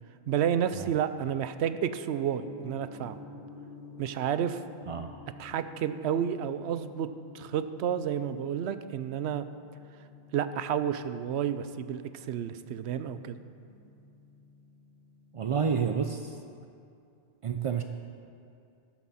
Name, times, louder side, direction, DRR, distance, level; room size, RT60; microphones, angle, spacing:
voice 1, 0.3-3.2 4.0-4.6 5.4-7.1 7.3-9.5 10.3-13.4, right 9 dB, 80° right, 12 dB, 0.9 m, -30 dB
Gong, 2.3-16.1, left 4 dB, 45° left, 1.5 m, -51 dB
voice 2, 15.3-16.4 17.4-17.8, right 6 dB, 65° right, 6 dB, 0.3 m, -30 dB
13.5 x 11.5 x 4.1 m, 2.5 s
omnidirectional pair, 1.1 m